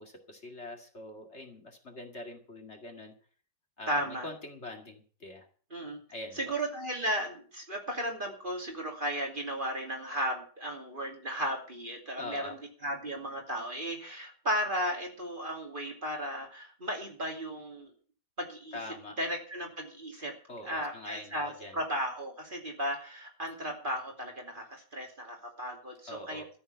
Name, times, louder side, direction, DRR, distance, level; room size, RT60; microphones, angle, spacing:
voice 1, 0.0-3.2 3.8-5.5 6.1-6.5 12.2-12.6 18.7-19.2 20.5-21.8 26.1-26.5, left 2 dB, 40° left, 3 dB, 2.5 m, -44 dB
voice 2, 3.9-4.3 5.7-6.0 6.4-17.9 18.4-18.8 19.2-20.3 20.6-26.4, equal, 30° right, 1 dB, 2.8 m, -35 dB
13.5 x 7.1 x 9.0 m, 0.43 s
omnidirectional pair, 1.8 m